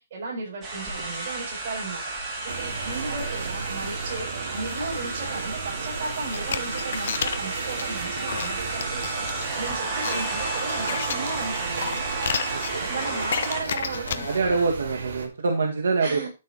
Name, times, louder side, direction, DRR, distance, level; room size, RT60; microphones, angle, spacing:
voice 1, 0.0-4.3 4.5-12.2 12.9-14.6 16.0-16.3, right 3 dB, 35° right, -4 dB, 6.1 m, -35 dB
sound 1, 0.6-13.6, right 2 dB, 15° right, 2.6 m, -32 dB
sound 2, 2.5-15.3, right 5 dB, 60° right, 2.2 m, -34 dB
sound 3, 6.2-14.4, left 7 dB, 50° left, 0.8 m, -33 dB
voice 2, 12.5-12.9 14.2-16.3, right 4 dB, 85° right, 1 dB, 1.9 m, -25 dB
12.5 x 4.6 x 4.9 m, 0.29 s
hypercardioid pair, 180°, 0 cm